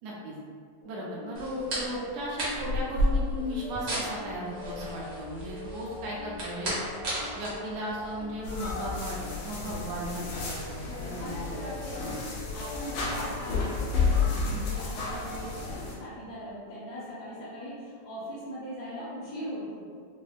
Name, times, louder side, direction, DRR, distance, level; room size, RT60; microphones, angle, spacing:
voice 1, 0.0-0.3 0.8-6.8 7.3-11.4, equal, 80° right, -4 dB, 1.6 m, -36 dB
sound 1, 0.8-14.2, left 5 dB, 50° left, 0.5 m, -44 dB
sound 2, 1.3-8.7, equal, 60° right, 1.2 m, -33 dB
sound 3, 8.4-15.9, left 4 dB, 90° left, 2.1 m, -31 dB
voice 2, 10.8-19.8, equal, 75° left, -8 dB, 1.6 m, -40 dB
6.0 x 2.0 x 2.4 m, 2.1 s
omnidirectional pair, 3.5 m